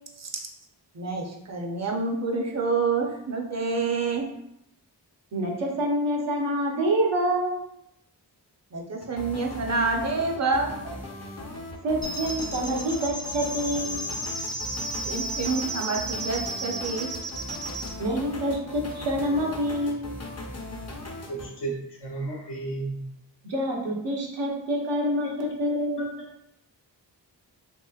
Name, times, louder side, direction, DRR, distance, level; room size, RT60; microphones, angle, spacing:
voice 1, 0.9-4.3 8.7-10.7 15.0-17.1, right 4 dB, 40° right, 1 dB, 0.6 m, -27 dB
voice 2, 5.3-7.6 11.8-14.0 18.0-20.1 23.5-26.1, right 1 dB, 75° right, -2 dB, 0.9 m, -27 dB
sound 1, 9.0-21.5, left 1 dB, 35° left, 0.7 m, -38 dB
sound 2, 12.0-17.9, right 1 dB, 10° left, 0.4 m, -33 dB
voice 3, 21.3-23.0 25.2-25.3 26.0-26.1, right 3 dB, 70° left, -1 dB, 0.9 m, -33 dB
3.0 x 2.9 x 2.3 m, 0.80 s
cardioid pair, 50°, 43 cm